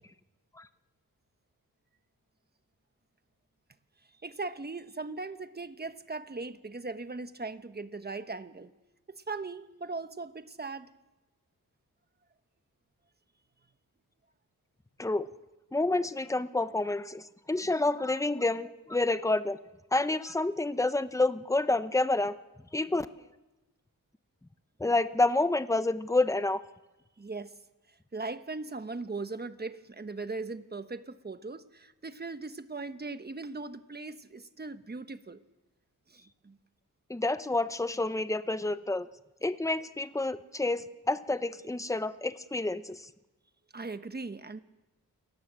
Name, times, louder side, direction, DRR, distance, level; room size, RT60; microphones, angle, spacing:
voice 1, 4.2-8.7 9.1-10.9 27.2-27.5 28.1-35.4 36.1-36.6 43.7-44.6, right 3 dB, 30° right, 10 dB, 1.2 m, -39 dB
voice 2, 15.7-19.6 19.9-22.3 22.7-23.1 24.8-26.6 37.1-39.1 39.4-43.1, left 2 dB, 10° left, 12 dB, 0.9 m, -29 dB
28.5 x 18.5 x 7.6 m, 1.1 s
wide cardioid pair, 100°, 34 cm